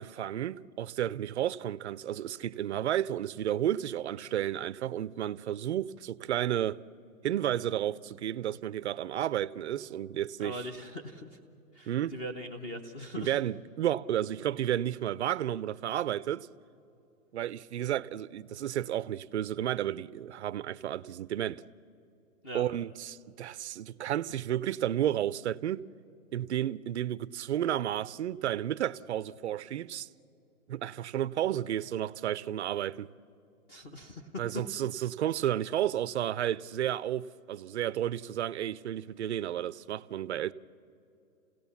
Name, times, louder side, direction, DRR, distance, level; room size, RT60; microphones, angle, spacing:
voice 1, 0.0-6.8 7.2-10.7 11.9-12.1 13.2-16.5 17.3-21.6 22.5-25.8 26.3-30.1 30.7-33.1 34.4-40.5, right 11 dB, 50° right, 0.5 m, -32 dB
voice 2, 10.4-11.4 11.7-13.4 22.4-22.7 33.7-34.4, equal, 20° left, 1.0 m, -41 dB
29.0 x 17.0 x 7.1 m
hypercardioid pair, 150°, 46 cm